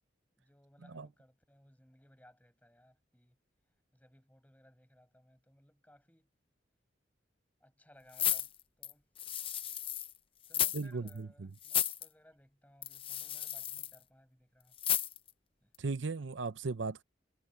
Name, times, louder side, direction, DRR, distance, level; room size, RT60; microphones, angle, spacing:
voice 1, 0.4-3.4 3.9-6.3 7.6-9.1 10.5-14.8 15.6-15.7, left 1 dB, 10° left, 7.0 m, -63 dB
sound 1, 8.1-10.1 10.4-10.8 11.1-11.2 11.6-12.1 12.8-14.0 14.8-15.3 15.7-15.8, left 10 dB, 30° left, 0.7 m, -33 dB
voice 2, 10.7-11.5 15.8-17.0, right 4 dB, 80° right, 0.7 m, -37 dB
head